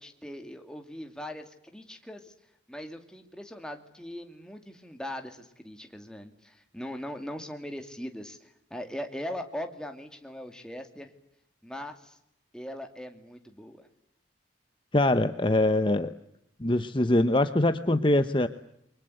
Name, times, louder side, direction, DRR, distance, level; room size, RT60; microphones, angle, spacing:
voice 1, 0.0-2.3 2.7-11.1 11.6-12.2 12.5-13.9, left 1 dB, 5° left, 5 dB, 2.5 m, -40 dB
voice 2, 14.9-16.1 16.6-18.5, left 1 dB, 25° left, 10 dB, 1.0 m, -23 dB
29.5 x 24.0 x 7.9 m, 0.76 s
head